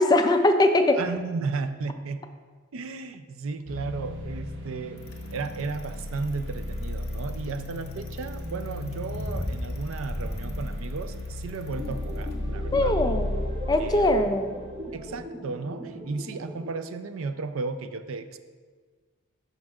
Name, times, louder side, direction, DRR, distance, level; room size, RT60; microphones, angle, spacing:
voice 1, 0.0-1.0 12.7-13.4 13.7-14.5, left 1 dB, 20° left, 7 dB, 0.3 m, -21 dB
voice 2, 0.9-2.2 2.7-5.0 5.3-13.0 13.8-14.3 14.9-18.4, right 4 dB, 70° right, 10 dB, 0.4 m, -34 dB
sound 1, 3.7-15.2, left 1 dB, 55° right, 0.9 m, -34 dB
Bicycle, 5.0-13.1, left 1 dB, 45° left, 0.9 m, -39 dB
sound 2, 11.7-16.7, equal, 25° right, 0.7 m, -39 dB
12.5 x 5.2 x 2.4 m, 1.5 s
head